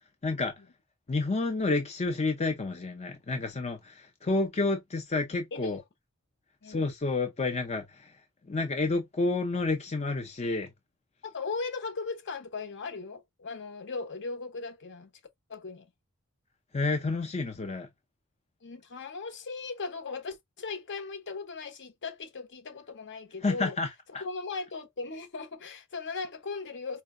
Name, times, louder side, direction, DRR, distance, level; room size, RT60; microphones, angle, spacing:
voice 1, 0.2-0.5 1.1-5.8 6.7-8.1 8.5-10.7 16.7-17.9 23.4-23.9, left 3 dB, 30° left, 0.6 m, -29 dB
voice 2, 11.2-15.1 15.5-15.9 18.6-23.8 24.2-27.0, left 4 dB, 55° left, 0.9 m, -38 dB
4.4 x 2.8 x 2.4 m
head